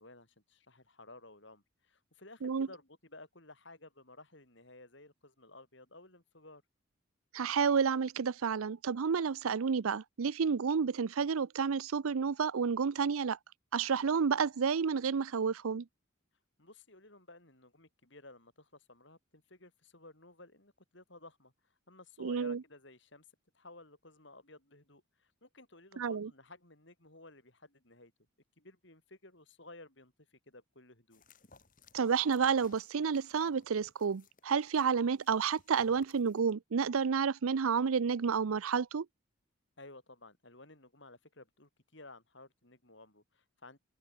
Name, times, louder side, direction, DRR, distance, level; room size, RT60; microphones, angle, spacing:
voice 1, 0.0-6.6 16.6-21.5 21.9-23.3 23.5-28.1 28.6-31.2 39.8-43.8, left 2 dB, 55° left, 5.2 m, -55 dB
voice 2, 7.3-13.4 13.7-15.8 22.2-22.6 26.0-26.3 31.9-39.1, right 6 dB, 80° right, 0.5 m, -30 dB
sound 1, 31.1-36.5, left 4 dB, 40° left, 4.1 m, -64 dB
head